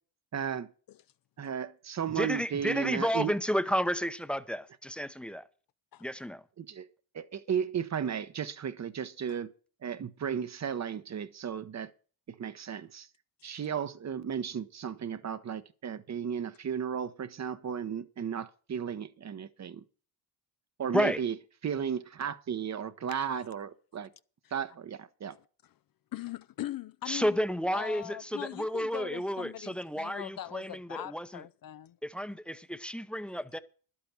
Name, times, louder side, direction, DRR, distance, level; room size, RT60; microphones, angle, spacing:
voice 1, 0.3-0.7 1.4-3.3 6.6-6.9 7.1-9.5 9.8-11.9 12.3-13.1 13.4-19.8 20.8-21.3 21.6-24.1 24.5-25.4, right 8 dB, 35° right, 0.9 m, -34 dB
voice 2, 2.2-5.5 6.0-6.4 20.9-21.2 27.1-31.4 32.0-33.6, equal, ahead, 0.7 m, -31 dB
voice 3, 26.1-27.4 27.7-32.0, left 13 dB, 50° left, 0.5 m, -41 dB
11.5 x 8.6 x 5.9 m
cardioid pair, 120°, 46 cm